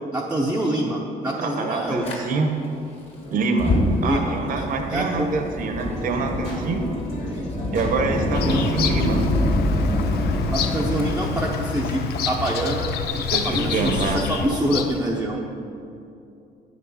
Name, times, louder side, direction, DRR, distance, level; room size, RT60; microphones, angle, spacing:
voice 1, 0.0-2.1 4.0-5.4 7.3-7.5 8.4-8.8 10.5-15.4, right 1 dB, 10° right, -3 dB, 0.8 m, -26 dB
voice 2, 1.4-2.5 3.3-3.7 4.0-6.9 7.7-9.2 13.3-14.2, right 3 dB, 55° right, 4 dB, 1.0 m, -25 dB
Fire, 2.0-2.2 3.4-12.5, left 1 dB, 35° left, 2.0 m, -26 dB
sound 1, 3.1-5.4 5.8-9.1, equal, 90° left, 2.2 m, -38 dB
Bird vocalization bird call bird song, 8.3-15.1, left 6 dB, 70° left, 0.6 m, -28 dB
8.6 x 6.1 x 5.6 m, 2.6 s
cardioid pair, 110°, 17 cm